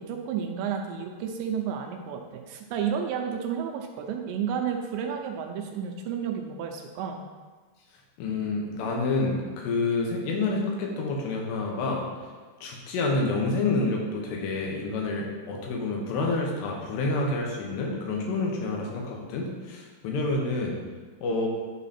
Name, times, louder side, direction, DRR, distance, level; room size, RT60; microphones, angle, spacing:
voice 1, 0.0-7.2, right 7 dB, 80° right, 3 dB, 2.7 m, -31 dB
voice 2, 8.2-12.0 12.6-20.8 21.2-21.5, left 3 dB, 75° left, 0 dB, 3.1 m, -28 dB
11.0 x 4.0 x 4.3 m, 1.4 s
omnidirectional pair, 5.3 m